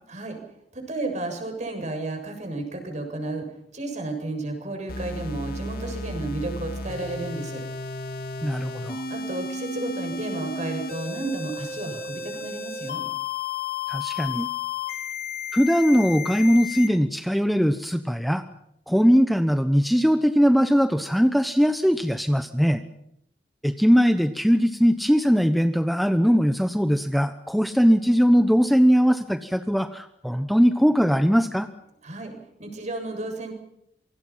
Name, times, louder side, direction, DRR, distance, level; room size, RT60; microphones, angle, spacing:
voice 1, 0.7-3.5 3.7-7.6 9.1-13.1 32.0-32.3 32.6-33.5, right 2 dB, 40° right, 4 dB, 7.2 m, -32 dB
sound 1, 4.9-16.9, left 4 dB, 55° left, 3.2 m, -33 dB
voice 2, 8.4-9.0 13.9-14.5 15.5-18.4 18.9-22.8 23.6-31.7, equal, ahead, 7 dB, 1.0 m, -20 dB
28.0 x 25.0 x 5.8 m, 0.78 s
head